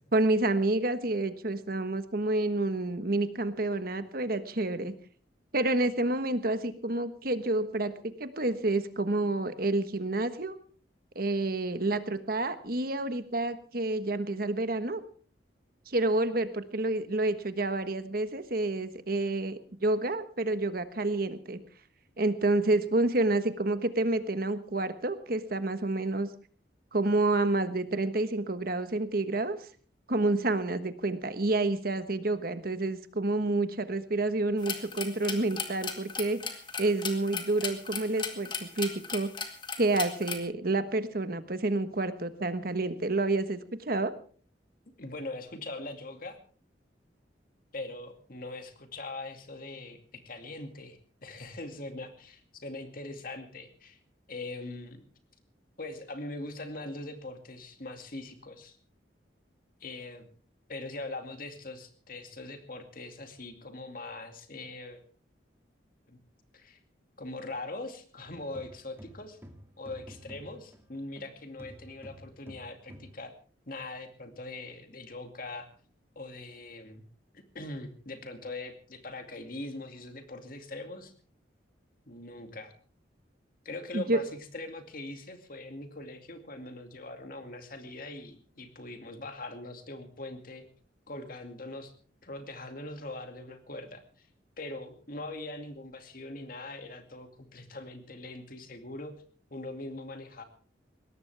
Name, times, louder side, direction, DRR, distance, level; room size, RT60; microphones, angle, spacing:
voice 1, 0.1-4.9 5.5-10.6 11.1-15.0 15.9-21.6 22.2-26.3 26.9-29.6 30.1-36.4 36.8-39.3 39.8-43.6 43.9-44.1 83.9-84.2, right 2 dB, 55° right, 10 dB, 1.3 m, -29 dB
sound 1, 34.6-40.4, left 5 dB, 25° left, 2.1 m, -36 dB
voice 2, 45.0-46.4 47.7-54.0 54.3-55.0 55.8-58.8 59.8-60.3 60.7-65.0 66.1-66.2 66.5-66.8 67.2-69.4 69.8-73.3 73.7-75.7 76.2-77.1 77.5-81.1 82.1-82.7 83.6-90.6 91.1-91.9 92.2-94.3 94.6-99.2 99.5-100.4, left 2 dB, 50° left, 6 dB, 2.3 m, -41 dB
sound 2, 68.2-71.3 71.6-73.2, equal, 15° right, 2.2 m, -50 dB
21.5 x 17.5 x 3.4 m, 0.41 s
head